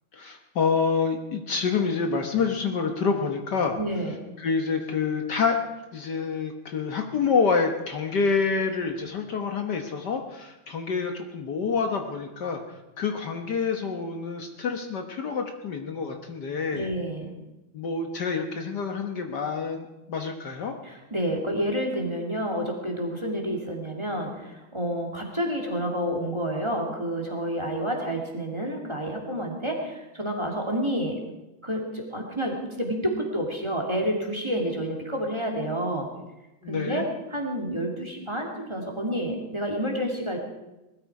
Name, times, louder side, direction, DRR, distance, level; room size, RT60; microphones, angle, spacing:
voice 1, 0.1-3.8 4.4-5.6 5.9-16.9 17.7-20.7 36.6-37.1, left 5 dB, 60° left, 4 dB, 1.7 m, -27 dB
voice 2, 3.8-4.1 16.7-17.3 20.8-31.2 31.6-36.1 36.7-40.4, equal, 15° right, 1 dB, 2.5 m, -29 dB
20.0 x 13.0 x 4.8 m, 1.0 s
omnidirectional pair, 2.2 m